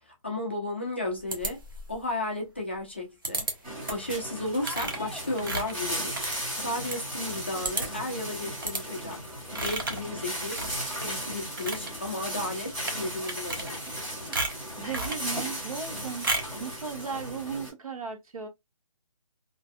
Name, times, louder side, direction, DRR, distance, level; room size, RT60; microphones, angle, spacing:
voice 1, 0.2-1.6 1.9-3.5 3.9-6.2 6.5-9.2 9.6-10.7 11.0-13.8, left 1 dB, 20° left, 0.4 m, -33 dB
sound 1, 1.3-2.0 3.2-3.5 3.9-4.1 4.6-7.0 7.3-7.4 7.6-8.1 8.6-8.8 9.5-10.1 10.5-11.1 11.4-11.9 12.8-13.0 13.3-14.0 14.3-15.2 16.2-16.6, right 2 dB, 40° right, 0.6 m, -33 dB
sound 2, 3.6-17.7, equal, 10° right, 0.9 m, -36 dB
voice 2, 14.8-16.3 16.6-18.5, right 6 dB, 85° right, 1.0 m, -36 dB
2.5 x 2.3 x 2.4 m
hypercardioid pair, 180°, 18 cm